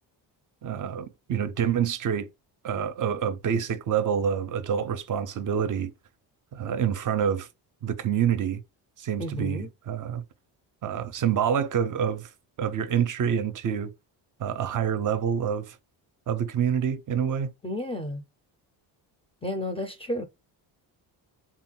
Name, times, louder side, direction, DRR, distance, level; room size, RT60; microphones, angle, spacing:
voice 1, 0.6-2.3 2.6-5.9 6.5-7.5 7.8-8.6 9.0-10.2 10.8-12.3 12.6-13.9 14.4-15.8 16.3-17.5, right 8 dB, 45° right, 0.5 m, -27 dB
voice 2, 9.2-9.7 17.6-18.2 19.4-20.2, left 1 dB, 15° left, 0.4 m, -32 dB
3.7 x 2.2 x 4.3 m
cardioid pair, 155°, 44 cm